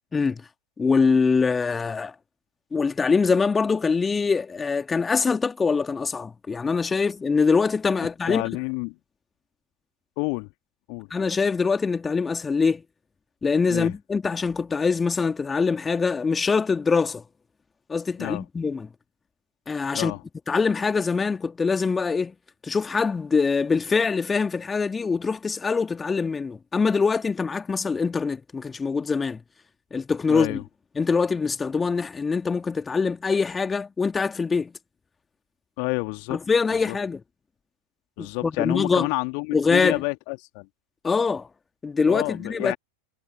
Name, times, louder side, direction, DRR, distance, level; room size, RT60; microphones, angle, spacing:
voice 1, 0.8-2.1 2.7-8.4 11.1-12.8 13.4-17.2 17.9-18.9 19.7-20.1 20.5-22.3 22.6-29.4 29.9-30.6 31.0-34.7 36.3-37.2 38.2-39.1 39.5-40.0 41.0-41.5 41.8-42.8, left 5 dB, 15° left, 2.8 m, -23 dB
voice 2, 8.0-9.0 10.2-10.5 10.9-11.1 13.7-13.9 18.2-18.4 19.9-20.2 30.3-30.6 35.8-36.4 36.9-37.0 38.2-40.7 42.1-42.8, left 40 dB or more, 45° left, 2.5 m, -29 dB
figure-of-eight pair, 90°, 0 cm